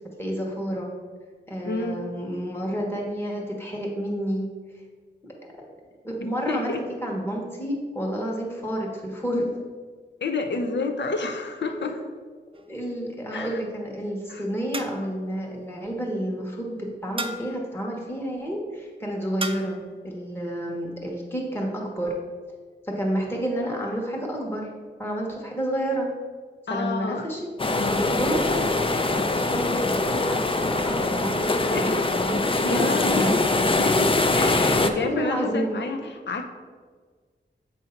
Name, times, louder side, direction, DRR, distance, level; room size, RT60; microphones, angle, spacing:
voice 1, 0.2-0.9 1.5-4.5 6.0-6.7 7.0-9.6 11.7-12.0 12.7-22.1 22.8-24.7 25.0-26.1 26.7-27.4 27.7-28.7 29.0-31.9 32.2-32.3 32.7-33.4 35.0-36.1, equal, 10° left, -2 dB, 1.2 m, -30 dB
voice 2, 1.6-2.2 6.2-6.8 10.2-12.0 13.3-13.6 14.3-14.4 19.5-19.6 26.7-27.3 27.7-28.1 31.7-32.0 32.6-33.3 33.8-36.5, left 3 dB, 70° left, 5 dB, 0.7 m, -30 dB
sound 1, 12.5-13.1 14.7-15.3 17.2-17.7 19.4-19.9, right 2 dB, 30° right, 0.4 m, -35 dB
sound 2, 27.6-34.9, left 2 dB, 30° left, 0.5 m, -23 dB
7.9 x 2.7 x 5.7 m, 1.5 s
wide cardioid pair, 80°, 19 cm